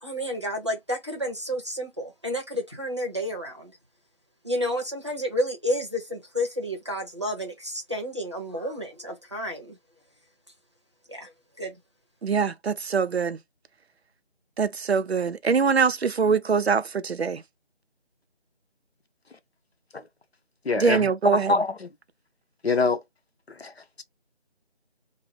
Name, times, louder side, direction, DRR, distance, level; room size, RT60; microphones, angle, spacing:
voice 1, 0.0-3.8 4.4-9.8 11.1-11.3 11.6-11.8, equal, 25° right, 0.8 m, -30 dB
voice 2, 12.2-13.4 14.6-17.4 20.8-21.5, right 5 dB, 70° right, 0.5 m, -23 dB
voice 3, 20.6-21.9 22.6-23.0 23.5-24.0, left 3 dB, 65° left, 0.9 m, -26 dB
3.0 x 2.1 x 3.2 m
figure-of-eight pair, 170°, 33 cm